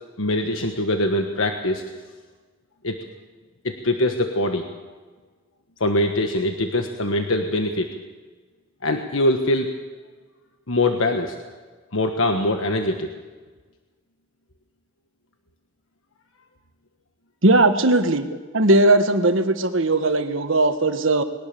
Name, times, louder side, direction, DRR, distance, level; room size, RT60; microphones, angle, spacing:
voice 1, 0.2-1.8 2.8-3.0 3.6-4.7 5.8-7.9 8.8-9.7 10.7-11.3 11.9-13.1, left 1 dB, 85° left, 5 dB, 1.4 m, -23 dB
voice 2, 17.4-18.3 18.5-21.2, right 2 dB, 75° right, 8 dB, 1.5 m, -18 dB
21.5 x 18.5 x 6.9 m, 1.4 s
head